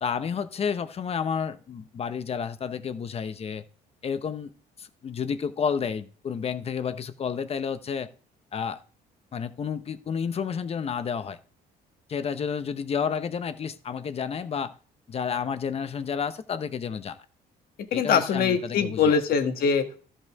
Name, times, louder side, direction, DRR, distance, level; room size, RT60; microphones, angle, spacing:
voice 1, 0.0-3.6 4.0-4.5 4.8-8.1 8.5-8.8 9.3-11.4 12.1-14.7 15.1-17.2 17.9-19.2, left 6 dB, 35° left, 0.9 m, -30 dB
voice 2, 17.9-20.0, left 6 dB, 60° left, 1.6 m, -23 dB
13.5 x 5.6 x 3.6 m
cardioid pair, 110°, 17 cm